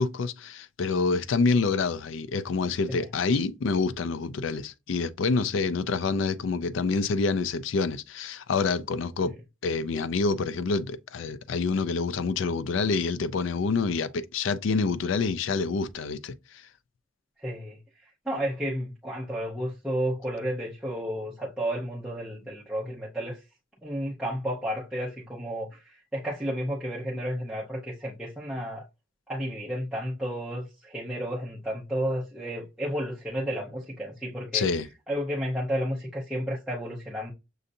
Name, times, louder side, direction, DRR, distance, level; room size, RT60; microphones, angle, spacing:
voice 1, 0.0-9.4 9.6-16.6 34.5-34.9, left 4 dB, 65° left, 0.4 m, -27 dB
voice 2, 17.4-17.8 18.3-23.4 23.8-28.8 29.3-34.6 35.1-37.3, equal, 5° right, 0.7 m, -32 dB
6.4 x 2.6 x 2.6 m
head